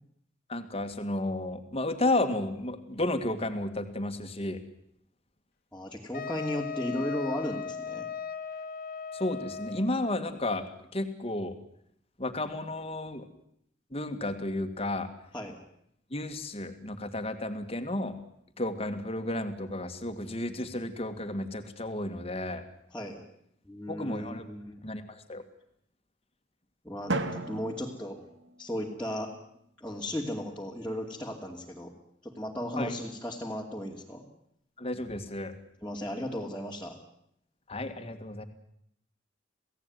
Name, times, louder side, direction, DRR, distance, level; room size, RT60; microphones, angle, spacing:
voice 1, 0.5-4.6 9.1-10.6 10.9-11.6 12.2-13.3 13.9-15.1 16.1-18.2 18.6-22.6 23.9-24.5 24.8-25.4 32.8-32.9 34.8-35.5 37.7-38.4, left 1 dB, 30° left, 7 dB, 2.2 m, -32 dB
voice 2, 5.7-8.1 15.3-15.6 22.9-23.2 23.6-24.8 26.8-28.3 28.6-29.3 29.8-31.9 32.2-34.3 35.8-37.0, equal, 5° left, -5 dB, 2.7 m, -35 dB
Wind instrument woodwind instrument, 6.1-10.0, left 6 dB, 50° left, 1.4 m, -38 dB
Drum, 27.1-29.1, right 2 dB, 70° right, 2.1 m, -35 dB
28.0 x 17.0 x 9.5 m, 0.73 s
head